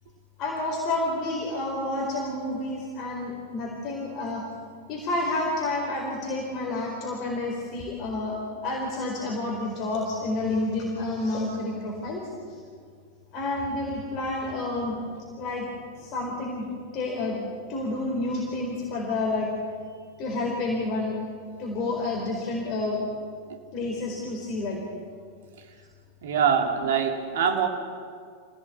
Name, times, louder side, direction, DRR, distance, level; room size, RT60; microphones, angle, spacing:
voice 1, 0.4-4.4 4.9-12.2 13.3-15.0 15.4-15.7 16.0-16.7 16.9-17.4 17.7-19.5 20.2-21.2 21.6-23.1 23.7-24.8, left 2 dB, 40° left, -1 dB, 4.3 m, -29 dB
voice 2, 26.2-27.7, right 7 dB, 60° right, 4 dB, 2.6 m, -24 dB
25.5 x 17.0 x 8.5 m, 2.1 s
figure-of-eight pair, 90°, 0 cm